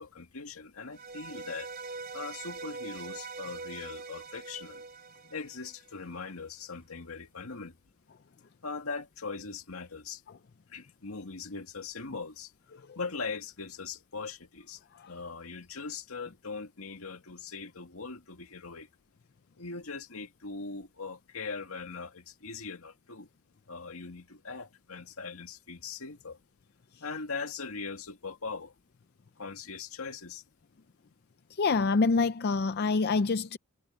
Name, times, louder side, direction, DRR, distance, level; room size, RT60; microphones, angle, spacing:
voice 1, 0.0-1.7 2.1-4.8 5.3-7.8 8.6-10.2 10.7-12.5 13.0-18.9 19.6-23.3 23.7-26.4 27.0-28.7 29.4-30.4, left 4 dB, 80° left, 2.0 m, -40 dB
sound 1, 0.9-6.1, right 4 dB, 45° right, 3.0 m, -43 dB
voice 2, 31.5-33.6, left 4 dB, 50° left, 0.5 m, -26 dB
head